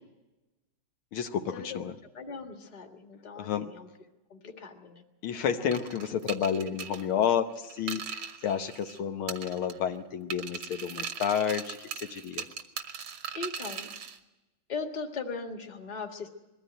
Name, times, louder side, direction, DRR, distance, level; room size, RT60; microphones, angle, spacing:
voice 1, 1.1-1.9 3.4-3.7 5.2-12.5, left 8 dB, 75° left, 7 dB, 1.8 m, -30 dB
voice 2, 2.1-3.9 4.3-5.0 13.3-13.9 14.7-16.3, left 4 dB, 20° left, 3 dB, 1.5 m, -39 dB
sound 1, 5.7-9.0 9.3-10.0 10.3-14.2, right 7 dB, 80° right, 2.0 m, -39 dB
21.5 x 14.5 x 9.2 m, 1.1 s
omnidirectional pair, 2.3 m